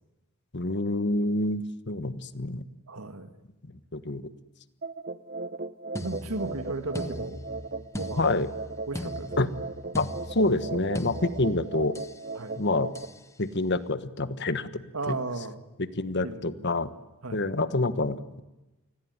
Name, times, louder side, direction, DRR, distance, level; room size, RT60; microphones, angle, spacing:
voice 1, 0.5-2.6 3.9-4.3 8.2-8.5 9.4-9.5 10.0-12.0 12.6-12.9 13.4-15.2 16.0-16.9 17.3-18.4, left 2 dB, 55° left, 12 dB, 1.4 m, -27 dB
voice 2, 2.9-3.3 6.0-7.4 7.9-8.3 8.9-9.5 12.4-12.6 14.9-15.6 16.2-16.4 17.2-17.4, right 2 dB, 85° right, 8 dB, 2.2 m, -35 dB
sound 1, 4.8-13.0, right 3 dB, 45° right, 1.0 m, -37 dB
sound 2, 6.0-12.2 13.0-13.2, left 1 dB, 15° left, 1.0 m, -40 dB
28.5 x 20.5 x 9.8 m, 1.0 s
head